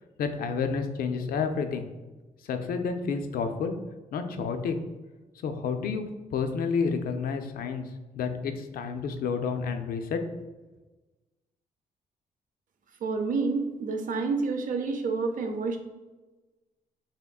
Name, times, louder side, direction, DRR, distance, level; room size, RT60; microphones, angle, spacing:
voice 1, 0.2-1.9 2.5-3.7 4.1-4.8 5.4-7.9 8.2-10.2, left 5 dB, 75° left, 7 dB, 0.4 m, -30 dB
voice 2, 13.0-15.8, right 4 dB, 65° right, 5 dB, 0.5 m, -28 dB
3.6 x 3.5 x 2.3 m, 1.2 s
cardioid pair, 110°, 15 cm